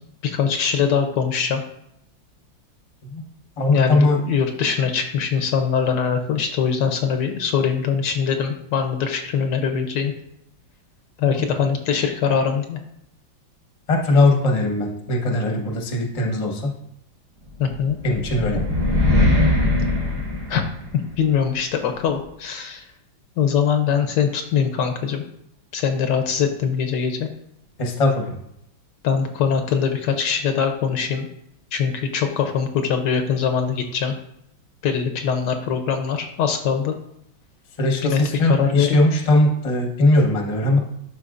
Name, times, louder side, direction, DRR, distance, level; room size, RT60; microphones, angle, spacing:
voice 1, 0.2-1.6 3.7-10.1 11.2-12.8 17.6-18.0 20.5-20.6 21.2-22.9 23.4-25.2 25.7-27.3 29.0-31.3 31.7-34.1 34.8-36.9 38.0-39.0, left 7 dB, 70° left, 6 dB, 1.2 m, -22 dB
voice 2, 3.6-4.2 13.9-16.7 18.0-18.6 27.8-28.3 37.8-40.8, left 2 dB, 25° left, 2 dB, 0.8 m, -19 dB
Fast metro, 17.7-21.1, left 2 dB, 55° right, 2.2 m, -20 dB
12.0 x 4.3 x 2.5 m, 0.76 s
omnidirectional pair, 2.1 m